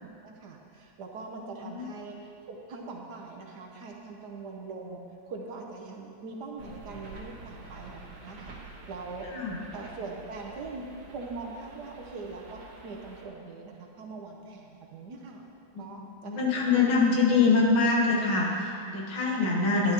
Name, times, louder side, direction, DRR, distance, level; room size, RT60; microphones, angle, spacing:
voice 1, 0.0-8.6 8.9-9.3 9.7-10.9 11.1-15.4 15.8-17.3 19.3-19.6, right 3 dB, 60° right, 0 dB, 1.3 m, -42 dB
sound 1, 6.6-13.2, right 2 dB, 80° right, 2.1 m, -48 dB
voice 2, 16.3-19.9, left 4 dB, 85° left, -2 dB, 2.2 m, -24 dB
11.0 x 11.0 x 2.9 m, 2.6 s
omnidirectional pair, 2.2 m